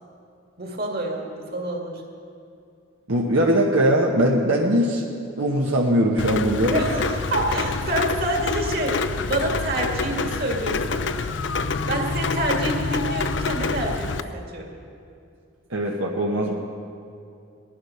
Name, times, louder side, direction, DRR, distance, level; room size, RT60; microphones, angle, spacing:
voice 1, 0.6-2.0 6.7-11.0 11.9-14.7, right 1 dB, 45° right, 0 dB, 2.1 m, -27 dB
voice 2, 3.1-5.0 5.4-6.7 15.7-16.6, right 1 dB, 75° right, -1 dB, 1.2 m, -20 dB
Rain, 6.2-14.2, left 4 dB, 60° left, 0.5 m, -27 dB
18.5 x 11.5 x 5.7 m, 2.5 s
head